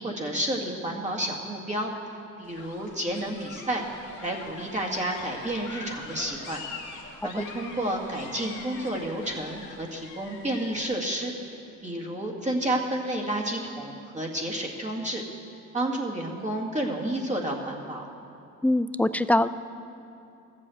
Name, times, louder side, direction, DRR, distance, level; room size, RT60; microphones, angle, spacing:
voice 1, 0.0-1.9 2.4-3.8 4.2-6.6 7.2-11.3 11.8-15.2 15.7-18.0, right 1 dB, 25° right, -1 dB, 2.0 m, -30 dB
sound 1, 2.4-11.0, left 4 dB, 90° left, 1.7 m, -43 dB
voice 2, 18.6-19.5, left 1 dB, 5° left, 13 dB, 0.3 m, -23 dB
13.5 x 7.8 x 7.8 m, 2.7 s
cardioid pair, 90°, 30 cm